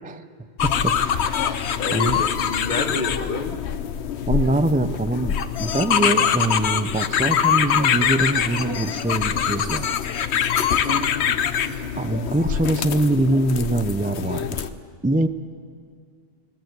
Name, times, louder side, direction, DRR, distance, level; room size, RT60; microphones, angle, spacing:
sound 1, 0.6-14.7, left 8 dB, 80° left, 1.0 m, -24 dB
voice 1, 0.6-1.0 1.9-2.2 4.3-5.3 5.6-9.9 12.0-14.7 15.0-15.3, right 1 dB, 10° right, 10 dB, 0.4 m, -23 dB
voice 2, 1.3-3.6 5.1-5.3 10.8-12.2, left 3 dB, 45° left, 9 dB, 1.3 m, -30 dB
20.5 x 16.5 x 7.9 m, 2.1 s
omnidirectional pair, 1.1 m